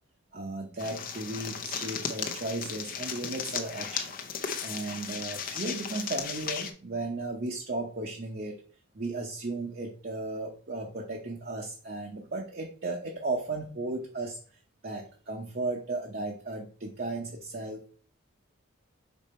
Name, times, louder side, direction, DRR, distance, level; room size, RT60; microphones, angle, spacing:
voice 1, 0.3-4.1 4.6-8.6 8.9-17.8, right 2 dB, 45° right, 0 dB, 0.8 m, -35 dB
sound 1, 0.8-6.7, left 7 dB, 40° left, 0.7 m, -36 dB
5.4 x 4.2 x 4.3 m, 0.42 s
head